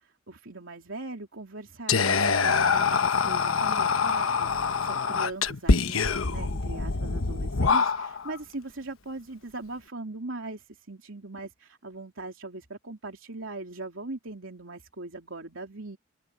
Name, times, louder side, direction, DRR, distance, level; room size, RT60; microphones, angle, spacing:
voice 1, 0.0-16.0, right 2 dB, 70° right, 3.4 m, -40 dB
Whispering, 1.9-8.3, left 5 dB, 75° left, 1.1 m, -25 dB
open air
head